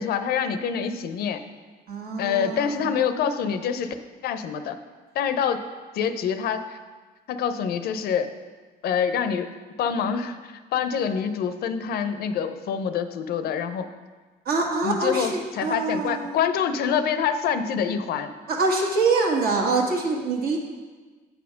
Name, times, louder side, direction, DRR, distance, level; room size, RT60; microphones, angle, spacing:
voice 1, 0.0-1.4 2.2-4.0 4.2-4.8 5.2-5.6 5.9-6.8 7.3-8.3 8.8-9.5 9.8-13.9 14.8-18.3, left 7 dB, 65° left, 10 dB, 0.6 m, -26 dB
voice 2, 1.9-2.9 14.4-16.4 18.5-20.6, right 3 dB, 60° right, 0 dB, 1.5 m, -25 dB
7.9 x 4.3 x 5.7 m, 1.4 s
cardioid pair, 110°, 17 cm